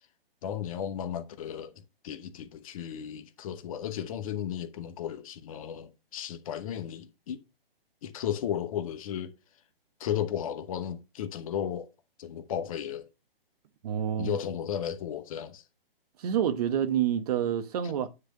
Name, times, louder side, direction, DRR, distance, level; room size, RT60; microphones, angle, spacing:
voice 1, 0.4-1.7 2.0-7.4 8.0-9.3 10.0-11.9 12.2-13.1 14.2-15.6, left 9 dB, 35° left, 0.9 m, -34 dB
voice 2, 13.8-14.4 16.2-18.1, right 9 dB, 40° right, 1.1 m, -28 dB
9.7 x 3.3 x 6.3 m
hypercardioid pair, 145°, 30 cm